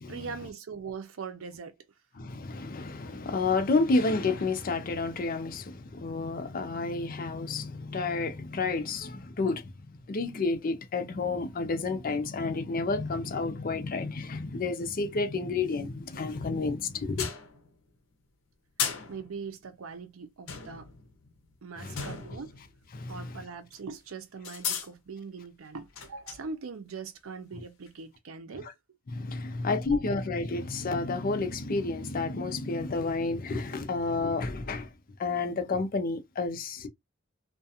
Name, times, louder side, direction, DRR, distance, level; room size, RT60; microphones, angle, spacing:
voice 1, 0.1-1.7 19.1-20.9 21.6-22.5 23.1-28.7 29.9-30.0, right 5 dB, 90° right, 0.5 m, -41 dB
voice 2, 2.2-9.6 10.1-17.3 21.8-22.0 22.9-23.4 28.5-28.7 29.1-34.9 35.2-36.9, left 3 dB, 45° left, 0.4 m, -30 dB
sound 1, 16.2-16.8 17.2-18.0 18.8-19.8 20.5-23.3 23.7-23.8 24.4-24.9 25.7-26.5 27.9-28.0, left 7 dB, 80° left, 0.7 m, -37 dB
2.4 x 2.2 x 2.7 m
head